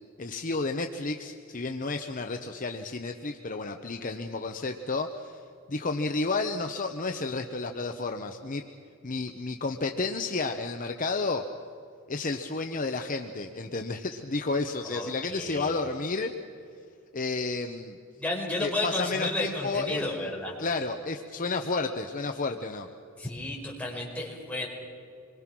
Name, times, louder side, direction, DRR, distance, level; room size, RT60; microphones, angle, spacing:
voice 1, 0.2-5.4 5.7-8.6 9.0-11.4 12.1-16.3 17.1-18.0 18.6-20.3 20.6-22.9, left 3 dB, 40° left, 5 dB, 0.9 m, -31 dB
voice 2, 14.9-15.8 18.2-20.6 23.2-24.7, left 2 dB, 5° left, -3 dB, 5.5 m, -32 dB
26.5 x 23.0 x 6.1 m, 2.3 s
head